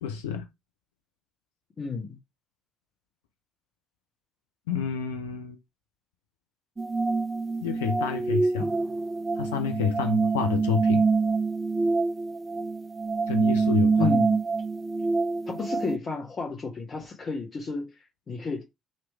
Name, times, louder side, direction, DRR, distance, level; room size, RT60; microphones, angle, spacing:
voice 1, 0.0-0.5 4.7-5.6 7.6-8.7 9.4-11.0 13.3-14.2, left 6 dB, 80° left, 0.4 m, -29 dB
voice 2, 1.8-2.2 14.0-14.4 15.5-18.6, left 4 dB, 40° left, 1.2 m, -32 dB
sound 1, 6.8-16.0, right 4 dB, 25° right, 0.3 m, -26 dB
3.1 x 3.0 x 4.4 m
hypercardioid pair, 50°, 0 cm